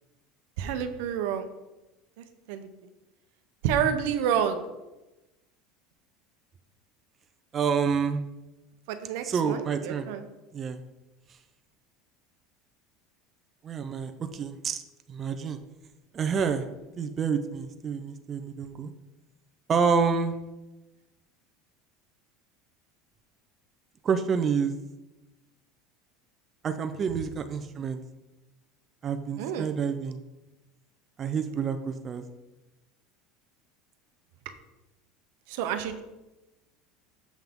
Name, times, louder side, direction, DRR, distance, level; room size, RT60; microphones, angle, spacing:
voice 1, 0.6-1.4 2.2-2.7 3.6-4.6 8.9-10.2 29.4-29.7 35.5-36.0, right 8 dB, 70° right, 8 dB, 0.7 m, -29 dB
voice 2, 7.5-8.2 9.2-10.1 10.5-10.8 13.6-14.8 15.1-15.6 16.1-16.6 17.0-18.9 19.7-20.3 24.0-24.7 26.6-28.0 29.0-30.2 31.2-32.2, right 6 dB, 30° right, 8 dB, 0.4 m, -28 dB
7.2 x 5.7 x 3.6 m, 1.0 s
supercardioid pair, 140°, 0 cm